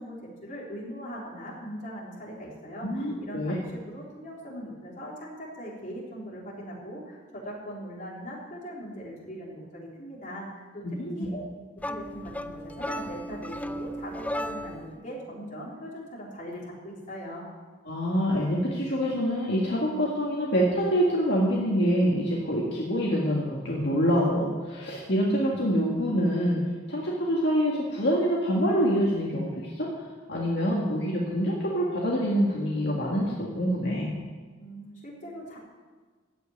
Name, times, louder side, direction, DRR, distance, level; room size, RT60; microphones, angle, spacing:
voice 1, 0.0-10.8 11.1-11.4 11.9-17.5 34.6-35.6, equal, 45° left, -4 dB, 3.7 m, -40 dB
voice 2, 2.8-3.6 11.0-11.3 17.9-26.6 26.9-29.9 30.3-34.1, equal, 65° left, -4 dB, 2.0 m, -26 dB
sound 1, 11.8-14.9, equal, 10° left, 0.4 m, -35 dB
15.5 x 5.7 x 9.2 m, 1.4 s
head